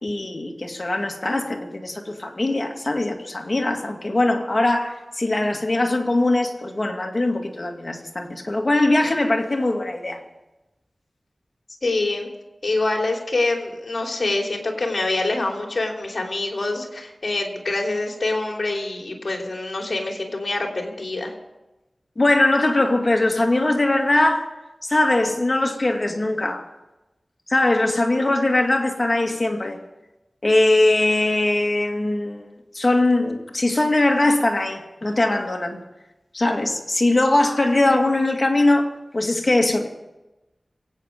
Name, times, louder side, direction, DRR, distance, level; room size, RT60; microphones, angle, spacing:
voice 1, 0.0-10.2 22.2-24.5 24.8-26.6 27.5-29.8 30.4-32.5 32.7-35.8 36.3-39.9, left 2 dB, 40° left, 2.1 m, -21 dB
voice 2, 11.8-12.3 12.6-21.3, left 2 dB, 60° left, 3.3 m, -25 dB
23.0 x 9.1 x 5.2 m
wide cardioid pair, 60°, 0 cm